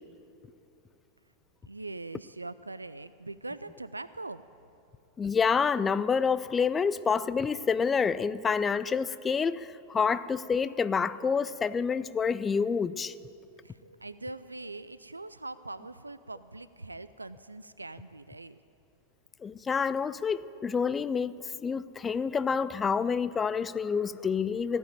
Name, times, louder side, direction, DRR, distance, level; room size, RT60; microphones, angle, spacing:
voice 1, 1.7-4.5 13.6-18.6, right 2 dB, 80° right, 15 dB, 0.3 m, -42 dB
voice 2, 5.2-13.1 19.4-24.8, left 6 dB, 20° left, 16 dB, 0.4 m, -28 dB
15.5 x 9.0 x 9.0 m, 2.7 s
figure-of-eight pair, 90°, 0 cm